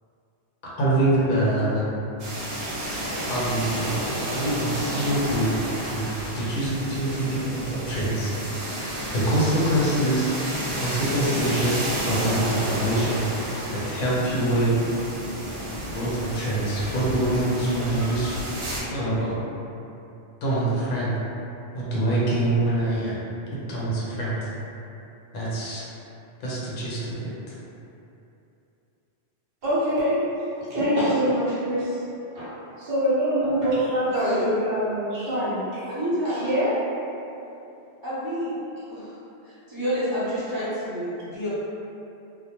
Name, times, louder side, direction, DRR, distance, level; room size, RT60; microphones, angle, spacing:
voice 1, 0.8-2.0 3.2-4.0 4.3-5.5 5.8-6.1 6.3-8.3 9.1-10.3 10.8-13.2 13.7-14.8 15.9-18.4 18.9-19.3 20.4-21.1 21.7-23.2 23.7-24.4 25.3-25.8 26.4-27.5, right 1 dB, 60° left, -8 dB, 0.7 m, -25 dB
sound 1, 2.2-18.8, right 1 dB, 85° right, 0.9 m, -31 dB
voice 2, 29.6-32.0 32.3-35.9 36.3-36.8, equal, 60° right, -10 dB, 0.9 m, -25 dB
voice 3, 34.1-34.5 35.3-35.5 35.9-36.4 38.0-38.5 38.9-39.1 39.4-41.5, equal, 20° right, -12 dB, 0.7 m, -28 dB
2.2 x 2.1 x 2.9 m, 2.8 s
omnidirectional pair, 1.1 m